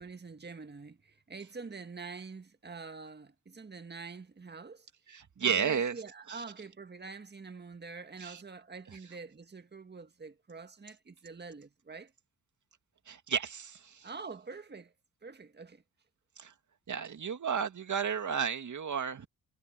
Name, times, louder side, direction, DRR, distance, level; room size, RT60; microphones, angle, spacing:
voice 1, 0.0-4.9 5.4-12.1 14.0-14.9 15.2-15.8, right 4 dB, 30° right, 1.8 m, -46 dB
voice 2, 5.1-6.0 6.3-6.4 8.2-8.4 13.1-14.1 16.4-16.5 16.9-19.3, right 7 dB, 50° right, 2.4 m, -33 dB
supercardioid pair, 60°, 37 cm